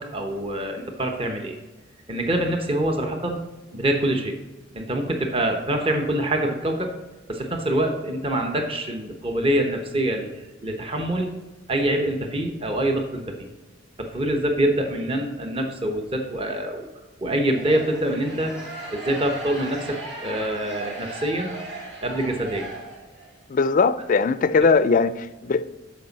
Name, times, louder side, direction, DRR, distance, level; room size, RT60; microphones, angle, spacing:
voice 1, 0.0-1.6 2.1-3.4 3.7-4.4 4.7-6.9 7.3-11.3 11.7-13.5 14.0-16.9 17.2-18.6 18.9-21.6 22.0-22.7, right 1 dB, 30° right, 0.9 m, -25 dB
sound 1, 17.4-23.4, right 2 dB, 60° right, 2.9 m, -37 dB
voice 2, 23.5-25.6, left 4 dB, 40° left, 0.4 m, -20 dB
13.0 x 5.2 x 4.0 m
head